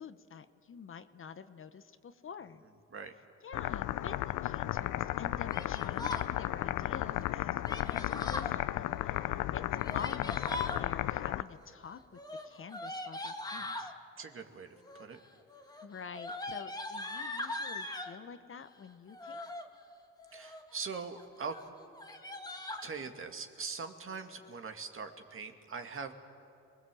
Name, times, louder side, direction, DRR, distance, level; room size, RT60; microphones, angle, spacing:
voice 1, 0.0-2.6 3.4-9.6 9.9-13.9 15.8-19.5, left 6 dB, 45° left, 11 dB, 1.0 m, -48 dB
sound 1, 3.5-11.4, left 15 dB, 85° left, 0.6 m, -34 dB
Yell, 5.5-6.3 7.6-8.5 9.7-10.8 12.1-13.9 14.8-15.2 15.5-18.1 19.1-19.7 20.2-20.7 21.1-21.3 21.5-21.6 21.9-22.9, left 2 dB, 15° left, 1.8 m, -40 dB
voice 2, 14.2-15.2 20.3-21.6 22.8-26.1, right 5 dB, 45° right, 5 dB, 2.1 m, -42 dB
27.5 x 20.5 x 7.7 m, 2.9 s
cardioid pair, 90°, 30 cm